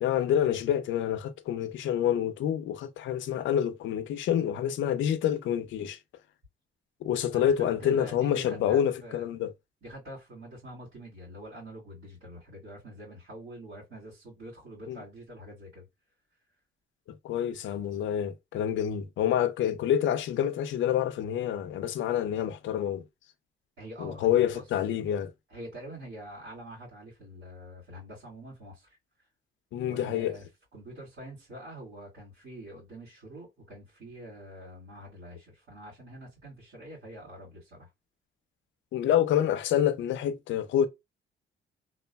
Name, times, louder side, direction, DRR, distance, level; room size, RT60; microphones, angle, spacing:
voice 1, 0.0-6.0 7.0-9.5 14.9-15.0 17.2-23.0 24.0-25.3 29.7-30.3 38.9-40.9, left 10 dB, 70° left, 0.5 m, -27 dB
voice 2, 7.3-9.3 9.8-15.9 23.8-24.6 25.5-29.0 29.8-30.4 30.7-37.9, equal, 75° right, 1.9 m, -45 dB
2.9 x 2.4 x 2.2 m
cardioid pair, 90°, 20 cm